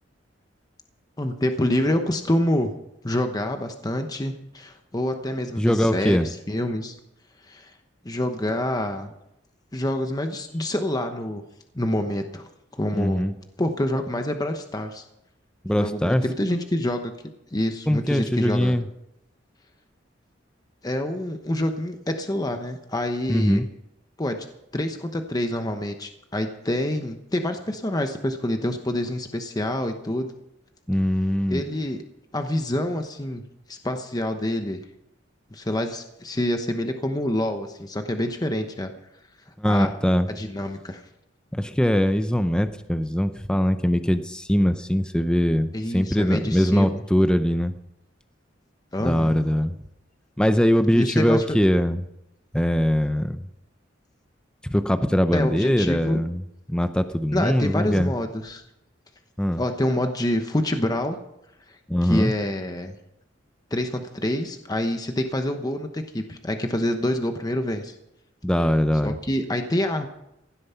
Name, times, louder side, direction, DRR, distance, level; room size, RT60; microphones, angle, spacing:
voice 1, 1.2-2.7 3.0-7.0 7.4-7.7 8.0-9.1 9.7-11.4 11.7-13.3 13.6-15.0 15.7-17.1 17.5-18.8 20.8-23.6 24.2-24.5 24.7-30.3 31.5-32.0 32.3-33.4 33.7-34.8 35.5-38.9 39.6-39.9 40.3-41.0 45.7-47.0 48.9-49.3 51.0-51.6 55.3-56.2 57.3-58.6 59.6-61.2 61.7-62.9 63.7-67.9 69.0-70.1, left 1 dB, 20° left, 6 dB, 0.9 m, -27 dB
voice 2, 5.6-6.3 12.9-13.3 15.6-16.2 17.9-18.8 23.3-23.7 30.9-31.6 39.6-40.3 41.5-47.7 49.0-49.7 50.4-52.0 52.5-53.4 54.6-56.4 56.7-58.1 59.4-59.6 61.9-62.3 68.4-69.2, equal, 5° left, 10 dB, 0.6 m, -22 dB
16.0 x 12.0 x 5.7 m, 0.84 s
head